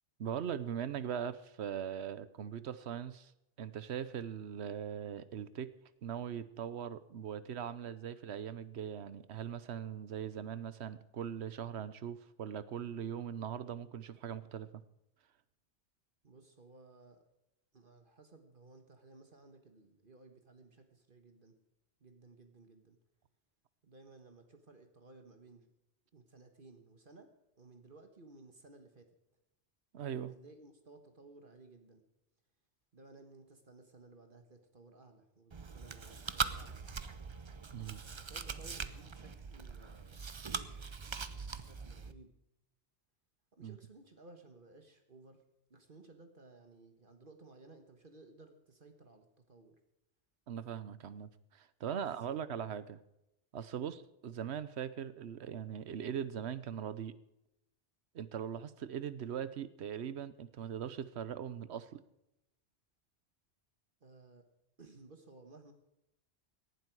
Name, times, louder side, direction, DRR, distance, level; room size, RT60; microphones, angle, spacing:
voice 1, 0.2-3.3 3.6-5.7 6.0-14.7 29.9-30.3 37.7-38.0 43.6-43.8 50.5-53.0 53.5-57.1 58.1-62.0, right 8 dB, 70° right, 15 dB, 1.1 m, -40 dB
voice 2, 16.2-17.2 17.7-21.5 22.0-23.0 23.8-25.7 26.1-27.3 27.6-29.1 30.3-32.0 32.9-36.8 38.1-42.3 43.6-45.4 45.7-49.7 51.9-52.4 53.8-53.9 64.0-64.5 64.8-65.7, right 3 dB, 50° right, 6 dB, 1.5 m, -58 dB
Chewing mastication, 35.5-42.1, right 5 dB, 30° right, 0.6 m, -41 dB
18.0 x 11.5 x 4.7 m, 0.87 s
omnidirectional pair, 1.2 m